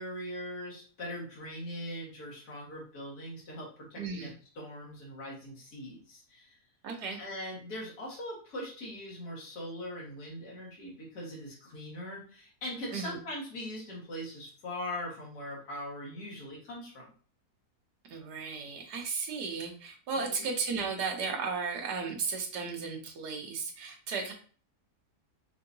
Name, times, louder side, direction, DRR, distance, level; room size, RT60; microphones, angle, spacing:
voice 1, 0.0-6.5 7.2-17.0 20.2-20.5, left 1 dB, 70° left, -4 dB, 2.1 m, -41 dB
voice 2, 4.0-4.3 6.8-7.2 12.9-13.2 18.1-24.3, right 5 dB, 80° right, 2 dB, 1.5 m, -35 dB
5.6 x 2.8 x 2.6 m, 0.42 s
omnidirectional pair, 1.7 m